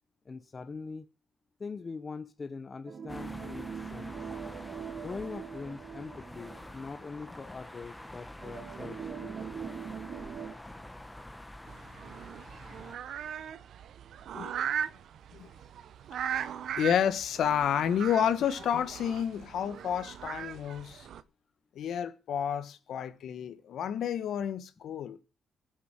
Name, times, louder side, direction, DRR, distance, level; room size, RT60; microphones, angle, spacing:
voice 1, 0.3-1.1 1.6-4.1 5.0-9.4, left 4 dB, 35° left, 0.8 m, -42 dB
sound 1, 2.9-7.2 7.6-7.7 8.4-10.5, right 7 dB, 50° right, 2.2 m, -42 dB
sound 2, 3.1-13.0, left 1 dB, 10° left, 1.2 m, -47 dB
sound 3, 11.7-21.2, right 9 dB, 70° right, 0.8 m, -39 dB
voice 2, 16.8-21.1 21.7-25.2, left 9 dB, 70° left, 1.4 m, -30 dB
14.0 x 7.4 x 7.3 m
cardioid pair, 90°, 0 cm